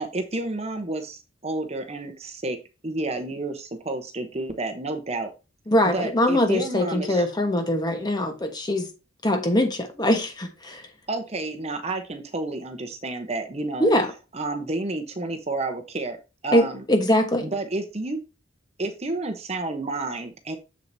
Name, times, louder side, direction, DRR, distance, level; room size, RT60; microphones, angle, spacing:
voice 1, 0.0-2.6 2.8-5.3 5.9-7.2 11.1-13.9 14.3-16.8 17.4-18.2 18.8-20.6, right 2 dB, 30° right, 0.9 m, -30 dB
voice 2, 5.7-8.9 9.2-10.9 13.8-14.1 16.5-17.5, left 1 dB, 20° left, 1.2 m, -22 dB
7.5 x 7.4 x 2.7 m
head